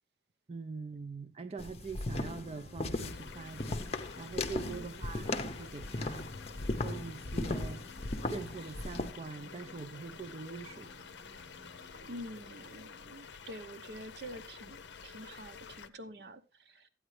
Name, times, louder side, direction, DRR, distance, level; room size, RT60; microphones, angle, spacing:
voice 1, 0.5-3.8 4.2-6.3 6.6-7.8 8.3-11.1, right 4 dB, 35° right, 0.4 m, -43 dB
sound 1, 1.6-9.1, left 2 dB, 35° left, 0.6 m, -37 dB
sound 2, 2.2-12.8, equal, 85° right, 2.3 m, -56 dB
sound 3, 3.0-15.9, left 6 dB, 75° left, 0.6 m, -50 dB
voice 2, 12.1-16.9, equal, 65° right, 0.9 m, -47 dB
13.0 x 8.9 x 3.2 m
head